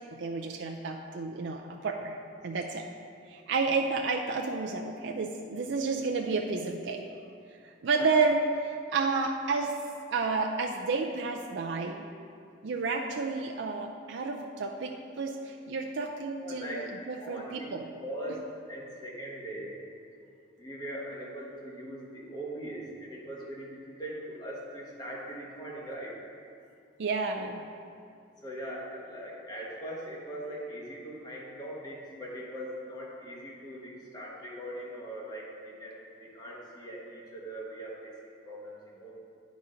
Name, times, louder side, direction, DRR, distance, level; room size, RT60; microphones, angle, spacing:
voice 1, 0.1-2.2 2.4-2.9 3.3-7.0 7.6-9.8 10.1-12.1 12.6-17.9 27.0-27.6, right 4 dB, 70° right, 1 dB, 0.4 m, -31 dB
voice 2, 16.4-17.7 18.0-19.8 20.6-26.2 28.4-39.2, right 1 dB, 20° left, -4 dB, 1.2 m, -41 dB
9.3 x 4.1 x 5.0 m, 2.4 s
head